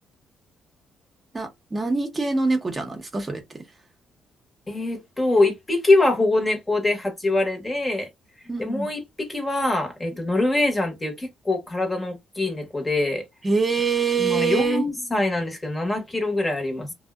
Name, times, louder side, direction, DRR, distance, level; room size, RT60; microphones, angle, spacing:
voice 1, 1.3-3.6 8.5-8.9 13.4-14.8, right 4 dB, 25° right, 0.7 m, -24 dB
voice 2, 4.7-8.1 8.6-13.2 14.2-16.9, left 2 dB, 20° left, 0.8 m, -24 dB
2.6 x 2.1 x 2.3 m
cardioid pair, 90°, 0 cm